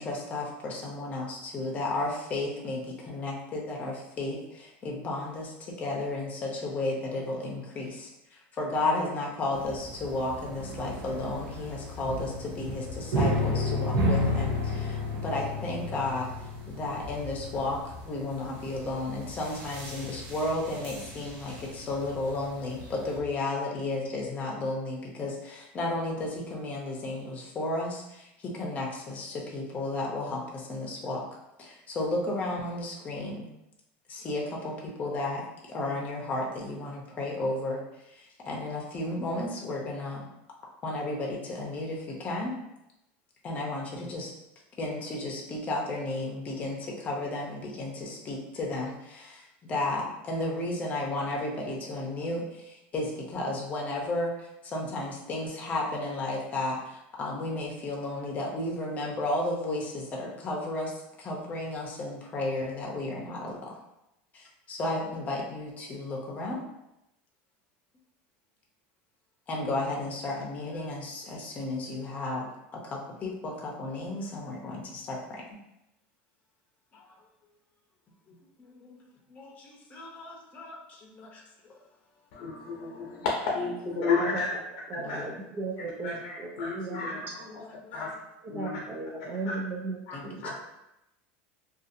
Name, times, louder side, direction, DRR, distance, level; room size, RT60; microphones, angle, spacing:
voice 1, 0.0-31.2 31.6-33.5 34.1-35.4 35.7-40.3 40.8-42.5 43.4-44.3 44.8-63.8 64.3-66.6 69.5-75.4 76.9-77.0 78.3-79.0 79.3-81.8 85.0-85.4 87.4-87.9 90.1-90.2, left 2 dB, 25° left, -2 dB, 0.7 m, -33 dB
sound 1, 9.5-23.2, left 1 dB, 55° right, 0.8 m, -33 dB
voice 2, 82.3-84.5 85.1-85.2 86.0-87.2 87.9-88.2 88.5-88.8 89.5-89.6 90.1-90.2 90.4-90.5, left 4 dB, 70° left, -2 dB, 0.6 m, -31 dB
voice 3, 83.9-84.5 84.9-87.2 88.4-90.0 90.2-90.5, right 3 dB, 40° right, -1 dB, 0.4 m, -36 dB
2.6 x 2.4 x 2.6 m, 0.87 s
supercardioid pair, 135°, 6 cm